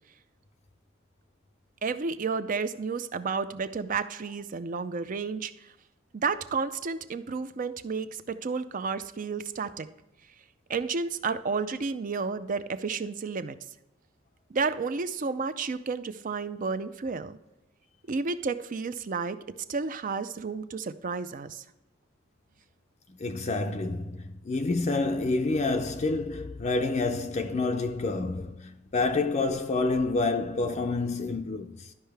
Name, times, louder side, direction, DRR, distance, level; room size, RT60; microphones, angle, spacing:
voice 1, 1.8-5.5 6.1-9.9 10.7-13.6 14.5-17.4 18.1-19.4 19.7-21.6, right 4 dB, 45° right, 0.5 m, -31 dB
voice 2, 23.2-31.9, left 3 dB, 35° left, 0.5 m, -28 dB
12.0 x 5.5 x 3.4 m
head